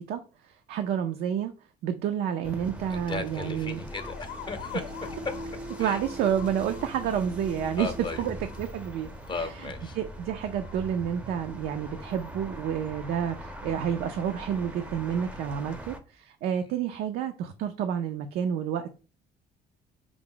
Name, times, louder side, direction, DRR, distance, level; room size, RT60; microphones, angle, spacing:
voice 1, 0.0-1.5 1.8-3.8 5.8-7.9 8.2-9.7 10.0-19.0, right 9 dB, 70° right, 7 dB, 0.4 m, -30 dB
sound 1, 2.4-16.0, equal, 5° right, 0.5 m, -41 dB
voice 2, 2.9-4.8 5.8-6.0 7.8-8.3 9.3-10.0, left 4 dB, 30° left, 8 dB, 0.7 m, -36 dB
sound 2, 3.9-10.9, left 8 dB, 70° left, 0.6 m, -47 dB
4.7 x 2.0 x 3.7 m, 0.35 s
cardioid pair, 110°, 17 cm